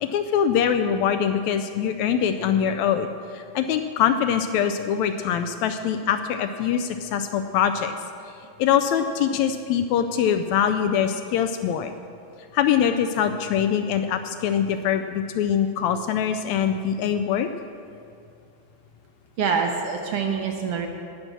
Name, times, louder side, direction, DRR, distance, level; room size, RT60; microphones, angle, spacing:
voice 1, 0.0-7.9 8.6-11.9 12.5-17.5, left 8 dB, 80° left, 8 dB, 1.6 m, -23 dB
voice 2, 19.4-20.9, right 6 dB, 70° right, 3 dB, 1.4 m, -25 dB
16.5 x 6.1 x 6.6 m, 2.4 s
omnidirectional pair, 3.6 m